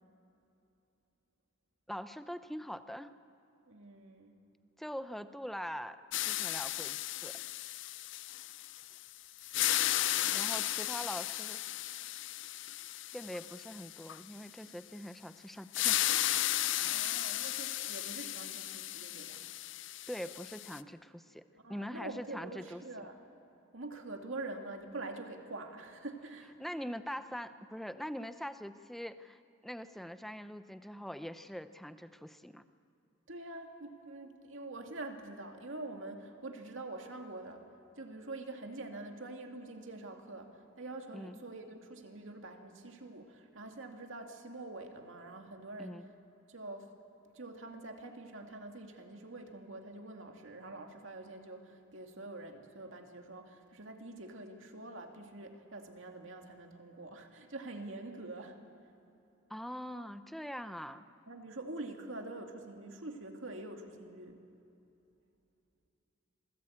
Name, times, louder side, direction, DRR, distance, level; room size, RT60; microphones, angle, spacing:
voice 1, 1.9-3.1 4.8-7.4 10.3-11.6 13.1-16.1 20.1-21.4 21.7-23.1 26.6-32.6 41.1-41.4 45.8-46.1 59.5-61.0, equal, ahead, 11 dB, 0.6 m, -43 dB
voice 2, 3.7-4.3 10.1-10.7 16.8-19.5 21.5-23.4 23.7-26.6 33.3-37.7 37.9-46.1 46.5-46.9 47.3-58.6 61.3-64.4, right 2 dB, 70° right, 3 dB, 2.3 m, -45 dB
sound 1, 6.1-9.0 9.4-14.2 15.7-20.8, left 14 dB, 60° left, 0.5 m, -35 dB
26.5 x 18.5 x 8.6 m, 2.7 s
head